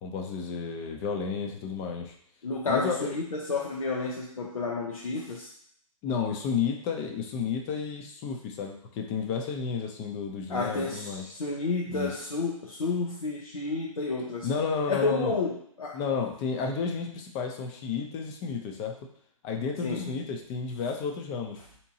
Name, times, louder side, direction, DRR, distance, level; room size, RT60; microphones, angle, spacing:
voice 1, 0.0-2.1 2.7-3.1 6.0-11.2 11.9-12.1 14.4-15.4 15.9-18.9 19.4-21.6, left 5 dB, 25° left, 3 dB, 0.6 m, -31 dB
voice 2, 2.4-5.5 10.5-14.5 14.9-16.0 19.8-20.1, left 3 dB, 85° left, -2 dB, 0.6 m, -31 dB
4.3 x 2.9 x 2.8 m, 0.68 s
figure-of-eight pair, 125°, 18 cm